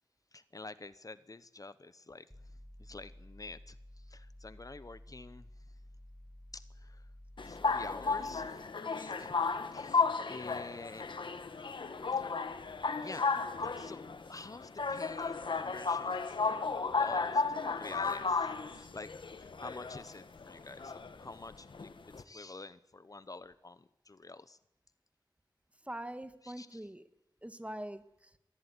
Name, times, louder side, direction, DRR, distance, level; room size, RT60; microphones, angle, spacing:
voice 1, 0.3-2.3 2.8-3.8 4.1-5.5 6.5-7.0 7.4-9.3 9.7-11.4 12.2-12.3 13.0-18.5 18.7-21.9 22.2-24.6 26.4-26.9, left 3 dB, 45° left, 15 dB, 0.9 m, -48 dB
sound 1, 2.3-8.5, left 1 dB, 5° left, 5.6 m, -53 dB
sound 2, 7.4-22.2, left 4 dB, 85° left, 1.4 m, -34 dB
voice 2, 25.9-27.0 27.4-28.3, right 1 dB, 15° right, 10 dB, 1.7 m, -43 dB
23.5 x 15.5 x 9.7 m, 0.85 s
wide cardioid pair, 80°, 8 cm